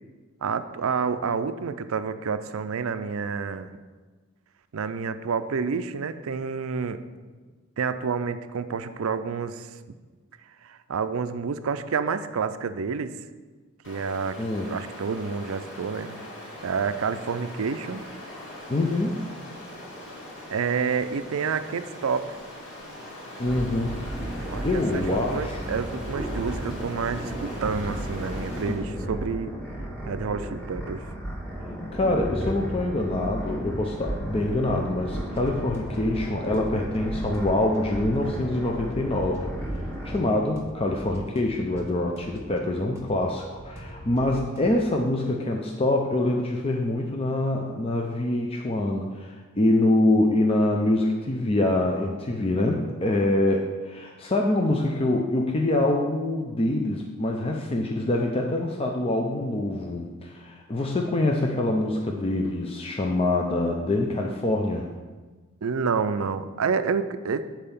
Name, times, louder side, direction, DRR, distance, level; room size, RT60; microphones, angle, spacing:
voice 1, 0.4-3.7 4.7-7.0 7.8-9.7 10.6-13.2 13.9-14.4 14.7-16.2 16.6-18.0 20.5-22.4 24.5-29.5 30.1-31.0 65.6-67.5, right 5 dB, 65° right, 11 dB, 0.4 m, -29 dB
Stream, 13.8-28.9, left 1 dB, 55° left, 2.2 m, -41 dB
voice 2, 18.7-19.2 23.4-24.3 24.6-25.6 28.7-29.1 31.9-39.4 40.0-64.9, left 1 dB, 25° left, 1 dB, 0.5 m, -25 dB
sound 1, 23.5-40.2, right 1 dB, 5° left, 1.2 m, -34 dB
sound 2, 35.0-36.2 36.5-37.0 37.3-39.8 40.1-40.2 40.5-45.0, right 1 dB, 10° right, 1.0 m, -45 dB
7.6 x 4.4 x 6.9 m, 1.4 s
head